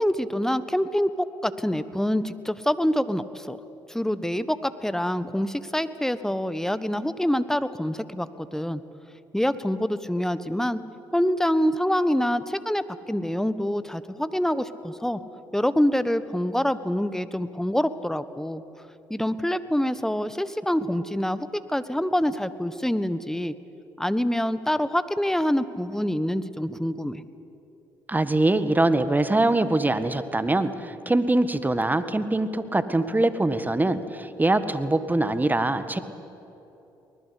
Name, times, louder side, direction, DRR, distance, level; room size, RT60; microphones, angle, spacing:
voice 1, 0.0-3.6 3.9-8.8 9.3-10.8 11.1-15.2 15.5-18.6 19.1-23.5 24.0-27.2, equal, 5° left, 13 dB, 1.3 m, -26 dB
voice 2, 28.1-36.0, right 2 dB, 15° right, 11 dB, 1.7 m, -23 dB
24.0 x 20.0 x 8.5 m, 3.0 s
hypercardioid pair, 55°, 11 cm